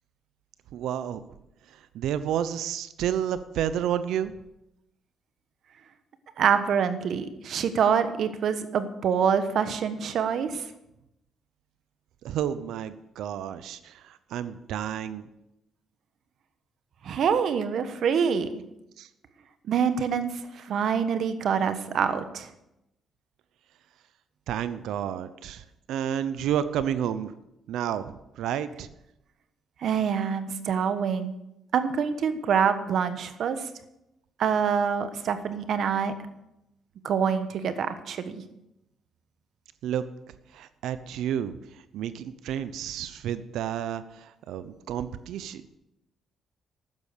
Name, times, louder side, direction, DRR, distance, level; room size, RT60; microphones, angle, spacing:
voice 1, 0.7-1.2 1.7-4.3 12.2-15.3 19.0-19.1 24.5-27.3 27.7-28.9 39.8-40.0 40.5-41.6 41.9-45.6, right 10 dB, 85° right, 13 dB, 0.7 m, -31 dB
voice 2, 6.4-10.6 17.0-18.6 19.7-22.5 29.8-31.3 31.7-33.6 34.4-36.2 37.0-38.4, right 7 dB, 65° right, 10 dB, 1.2 m, -26 dB
12.0 x 9.7 x 6.8 m, 0.87 s
cardioid pair, 90°, 0 cm